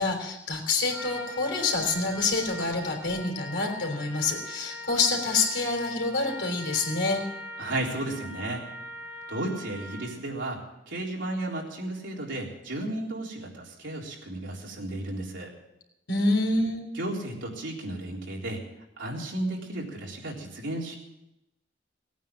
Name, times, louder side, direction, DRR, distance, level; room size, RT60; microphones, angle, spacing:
voice 1, 0.0-7.2 16.1-16.8, left 3 dB, 75° left, 2 dB, 3.5 m, -27 dB
Trumpet, 0.9-10.2, left 1 dB, 10° right, 7.6 m, -41 dB
voice 2, 7.6-8.6 9.3-10.6 10.9-15.5 16.9-18.6 19.0-20.9, right 1 dB, 85° right, -2 dB, 3.9 m, -33 dB
18.5 x 9.2 x 7.6 m, 0.89 s
head